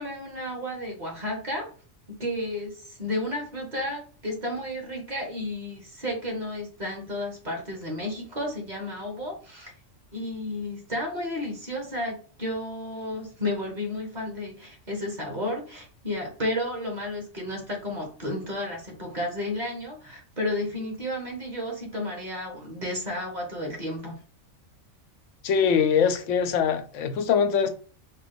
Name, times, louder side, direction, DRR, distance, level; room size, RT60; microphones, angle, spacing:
voice 1, 0.0-1.7 2.1-9.7 10.1-24.2, left 1 dB, 40° right, 1.3 m, -32 dB
voice 2, 25.4-27.7, left 7 dB, 80° left, 0.9 m, -22 dB
3.9 x 2.4 x 3.9 m
omnidirectional pair, 1.3 m